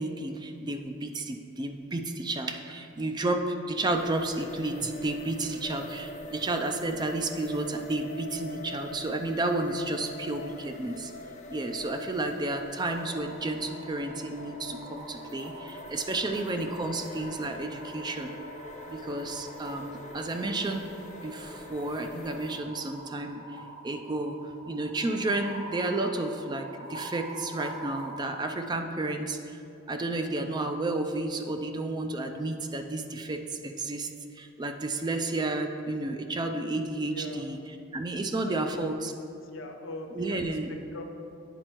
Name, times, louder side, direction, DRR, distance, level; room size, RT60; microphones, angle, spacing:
voice 1, 0.0-11.1 11.5-18.3 18.9-20.9 21.2-23.6 23.8-29.6 29.9-34.1 34.3-37.6 37.9-38.9 40.2-40.7, right 2 dB, 20° right, 5 dB, 0.4 m, -31 dB
sound 1, 3.9-22.6, left 2 dB, 35° left, 0.5 m, -44 dB
sound 2, 12.8-28.4, right 2 dB, 45° right, 1.5 m, -46 dB
voice 2, 37.1-37.4 38.4-39.0 39.4-41.0, left 1 dB, 70° left, 3 dB, 0.7 m, -41 dB
9.0 x 4.3 x 4.4 m, 2.5 s
head